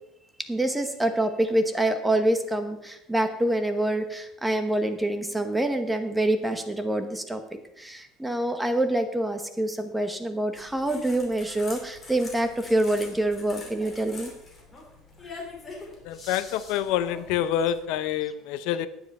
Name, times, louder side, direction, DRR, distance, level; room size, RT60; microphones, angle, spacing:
voice 1, 0.5-7.4 7.8-14.3, right 1 dB, 5° right, 7 dB, 1.0 m, -26 dB
sound 1, 10.5-17.8, left 3 dB, 20° left, 2.8 m, -44 dB
voice 2, 16.1-18.9, left 10 dB, 75° left, 13 dB, 0.6 m, -27 dB
10.0 x 9.5 x 5.4 m, 0.82 s
cardioid pair, 155°, 0 cm